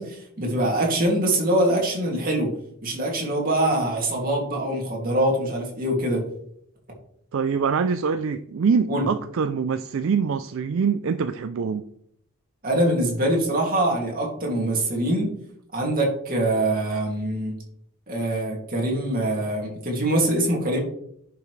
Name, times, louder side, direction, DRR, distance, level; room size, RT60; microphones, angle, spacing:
voice 1, 0.0-2.5 2.8-6.2 8.9-9.0 12.6-15.3 15.7-17.6 18.1-20.8, right 1 dB, 40° right, -1 dB, 2.4 m, -24 dB
voice 2, 7.3-11.8, right 6 dB, 65° right, 10 dB, 0.4 m, -24 dB
10.5 x 5.8 x 3.2 m, 0.70 s
head